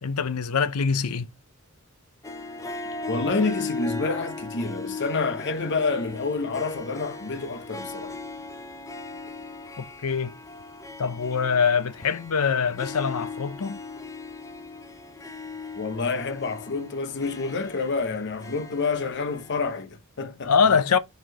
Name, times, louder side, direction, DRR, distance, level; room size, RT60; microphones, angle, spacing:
voice 1, 0.0-1.3 9.8-10.4 11.0-13.8 20.4-21.0, left 6 dB, 80° left, 0.6 m, -24 dB
Harp, 2.2-19.8, left 3 dB, 15° left, 0.5 m, -38 dB
voice 2, 3.1-8.2 15.7-20.5, left 4 dB, 55° left, 0.8 m, -28 dB
6.3 x 4.4 x 3.4 m
head